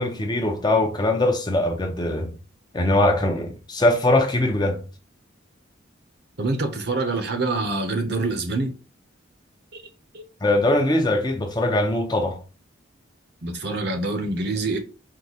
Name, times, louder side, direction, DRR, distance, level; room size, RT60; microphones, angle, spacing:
voice 1, 0.0-2.3 2.7-4.8 10.4-12.4, left 1 dB, 20° left, 0.6 m, -21 dB
voice 2, 6.4-8.7 9.7-9.8 10.1-10.2 13.4-14.8, right 2 dB, 55° right, 0.8 m, -25 dB
4.7 x 2.1 x 4.1 m
head